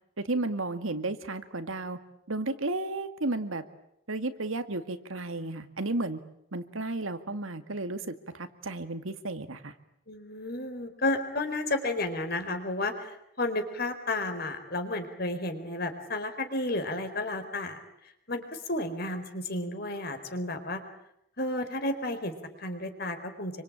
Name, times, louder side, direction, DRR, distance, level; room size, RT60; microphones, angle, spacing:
voice 1, 0.2-2.0 2.3-3.6 4.1-6.2 6.5-9.7, right 2 dB, 85° right, 9 dB, 2.1 m, -33 dB
voice 2, 10.1-17.8 18.3-20.8 21.4-23.6, left 2 dB, 50° left, 7 dB, 4.3 m, -32 dB
27.5 x 25.0 x 8.8 m, 0.78 s
head